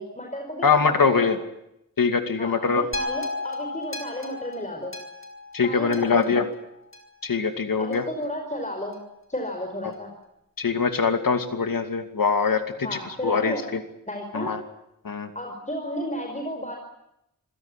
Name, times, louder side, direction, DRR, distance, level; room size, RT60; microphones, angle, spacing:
voice 1, 0.0-1.3 2.4-4.9 5.6-6.4 7.8-9.0 9.3-10.1 12.8-13.6 14.0-14.5 15.3-16.8, equal, 20° left, 2 dB, 5.0 m, -33 dB
voice 2, 0.6-1.4 2.0-2.8 5.5-6.4 7.2-8.0 10.6-12.9 13.2-13.8 14.3-14.6 15.0-15.3, left 5 dB, 85° left, 7 dB, 2.6 m, -23 dB
sound 1, 2.9-7.3 7.9-8.0, left 2 dB, 40° left, 4.6 m, -35 dB
26.5 x 16.5 x 10.0 m, 0.83 s
wide cardioid pair, 95°, 33 cm